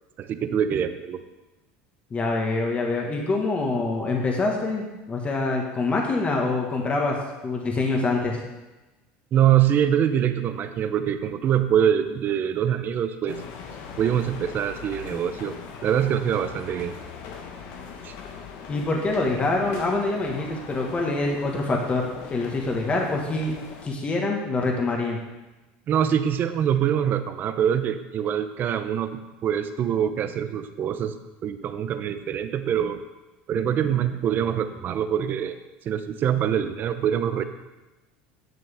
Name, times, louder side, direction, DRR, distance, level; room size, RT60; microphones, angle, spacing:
voice 1, 0.2-1.2 9.3-13.4 14.0-15.6 15.8-16.9 18.0-18.1 25.9-31.1 31.4-33.0 33.5-35.6 35.8-37.4, right 9 dB, 40° right, 10 dB, 0.7 m, -24 dB
voice 2, 2.1-8.4 18.7-23.5 23.8-25.2, left 3 dB, 25° left, 0 dB, 1.7 m, -25 dB
sound 1, 13.3-23.9, left 6 dB, 65° left, 1.3 m, -40 dB
11.0 x 6.8 x 3.6 m, 1.1 s
supercardioid pair, 115°, 5 cm